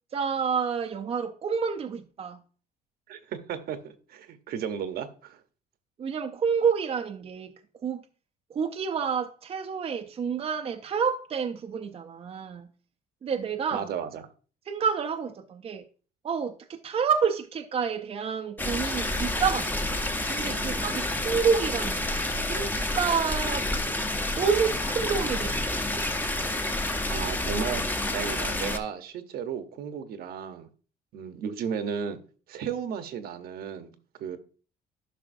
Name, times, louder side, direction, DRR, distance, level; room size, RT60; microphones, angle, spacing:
voice 1, 0.1-2.4 6.0-7.5 7.8-8.0 8.5-12.7 13.2-13.9 14.7-15.8 16.2-20.0 20.3-22.1 22.5-23.7 24.3-25.8, right 6 dB, 35° right, 0.5 m, -29 dB
voice 2, 3.1-5.4 13.7-14.2 27.1-30.7 31.1-32.2 32.5-33.9 34.2-34.4, right 7 dB, 65° right, 0.9 m, -34 dB
sound 1, 18.6-28.8, left 1 dB, 10° left, 0.8 m, -29 dB
11.0 x 5.5 x 2.6 m
cardioid pair, 110°, 17 cm